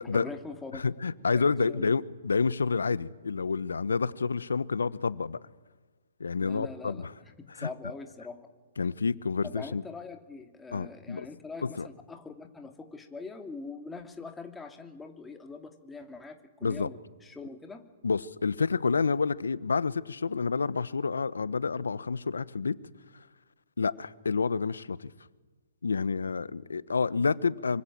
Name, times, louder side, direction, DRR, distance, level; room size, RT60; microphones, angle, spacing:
voice 1, 0.0-0.9 1.3-2.0 6.4-8.5 9.4-17.9, left 4 dB, 10° left, 4 dB, 2.7 m, -43 dB
voice 2, 0.8-5.4 6.2-7.0 7.6-7.7 8.8-9.8 10.7-11.3 11.8-11.9 16.6-16.9 18.0-22.8 23.8-25.1 25.8-27.8, left 4 dB, 80° left, 18 dB, 1.0 m, -29 dB
26.5 x 25.0 x 7.6 m, 1.3 s
hypercardioid pair, 130°, 0 cm